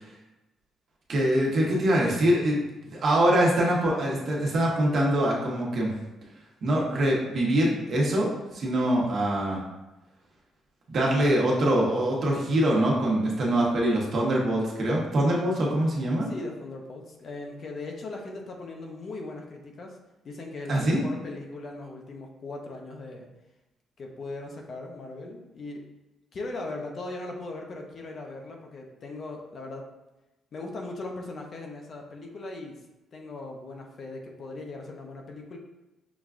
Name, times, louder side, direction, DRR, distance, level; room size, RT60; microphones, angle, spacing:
voice 1, 1.1-5.9 6.6-9.6 10.9-16.3 20.7-21.0, right 1 dB, 55° right, -3 dB, 1.0 m, -24 dB
voice 2, 16.2-20.0 20.2-23.3 24.0-25.8 26.3-29.9 30.5-32.8 33.1-35.6, left 2 dB, 50° left, 1 dB, 0.6 m, -39 dB
5.8 x 2.3 x 2.5 m, 1.0 s
cardioid pair, 90°, 0 cm